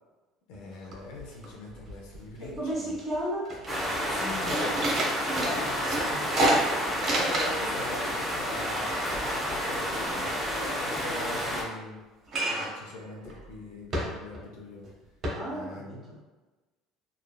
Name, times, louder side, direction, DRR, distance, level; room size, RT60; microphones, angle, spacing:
voice 1, 0.5-2.9 4.1-4.8 6.4-6.7 7.1-10.3 10.8-12.0 12.5-14.8 15.5-16.1, left 2 dB, 75° left, -1 dB, 0.6 m, -42 dB
sound 1, 0.6-0.7 0.9-1.5 1.7-2.6 3.0-3.1 3.5-7.8 8.0-10.5 12.3-12.8 13.2-13.4 13.9-14.5 14.8-14.9 15.2-15.3, right 1 dB, 40° right, 0.9 m, -30 dB
voice 2, 2.4-3.6 5.2-5.8 6.1-6.3 15.4-16.2, right 1 dB, 25° right, -6 dB, 1.4 m, -34 dB
sound 2, 3.7-11.6, equal, 5° right, 0.9 m, -30 dB
3.1 x 2.4 x 2.3 m, 1.2 s
supercardioid pair, 80°, 0 cm